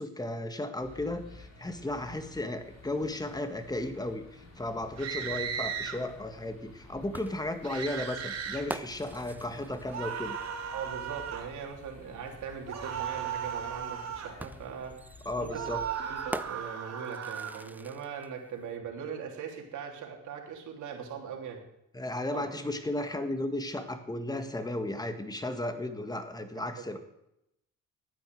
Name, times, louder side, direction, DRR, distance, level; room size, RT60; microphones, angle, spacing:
voice 1, 0.0-10.4 15.2-15.8 21.9-27.0, left 1 dB, 15° left, 8 dB, 1.8 m, -35 dB
sound 1, 0.8-16.6, left 3 dB, 60° left, 4.3 m, -52 dB
sound 2, 5.0-6.0 7.6-8.6 9.9-11.5 12.7-14.4 15.5-17.6, right 8 dB, 60° right, 3.3 m, -36 dB
sound 3, 7.1-10.8 12.3-12.4 14.4-18.3, right 2 dB, 5° right, 0.5 m, -44 dB
voice 2, 10.7-14.9 15.4-15.6 16.0-21.6 22.3-22.5, right 7 dB, 80° right, 1 dB, 3.4 m, -40 dB
13.0 x 9.5 x 7.7 m, 0.83 s
cardioid pair, 90°, 30 cm